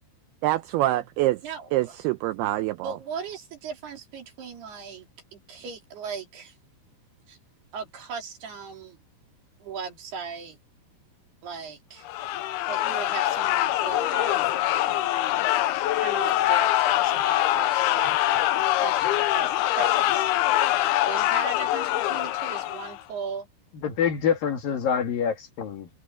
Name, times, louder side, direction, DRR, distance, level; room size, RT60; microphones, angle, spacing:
voice 1, 0.4-1.4 1.7-3.0, right 16 dB, 80° right, 2.4 m, -25 dB
voice 2, 1.4-1.8 2.8-6.5 7.3-7.4 7.7-9.0 9.6-10.6 11.4-12.1 12.7-15.5 16.0-18.2 18.8-20.3 21.1-23.5, right 5 dB, 65° right, 5.4 m, -38 dB
sound 1, 12.1-23.0, left 14 dB, 75° left, 2.5 m, -24 dB
voice 3, 23.7-25.9, left 7 dB, 60° left, 3.4 m, -26 dB
omnidirectional pair, 5.1 m